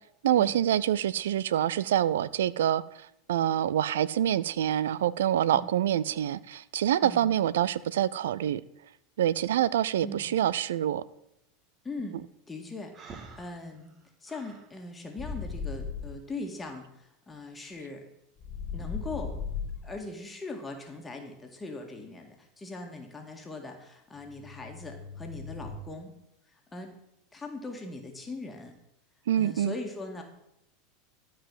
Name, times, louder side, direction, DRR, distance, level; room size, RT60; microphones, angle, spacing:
voice 1, 0.2-2.8 3.3-8.6 9.2-11.0 29.3-29.7, right 11 dB, 80° right, 0.4 m, -26 dB
voice 2, 7.0-7.3 10.0-10.4 11.8-13.9 14.2-18.0 18.7-19.4 19.8-26.1 26.7-26.9 27.3-28.7 29.4-30.2, left 2 dB, 15° left, 1.9 m, -40 dB
Breathing, 12.9-14.7, right 4 dB, 35° right, 1.8 m, -48 dB
sound 1, 15.2-16.2 18.4-20.0 24.2-25.8, left 5 dB, 40° left, 1.2 m, -37 dB
12.5 x 4.9 x 7.5 m
hypercardioid pair, 95°, 0 cm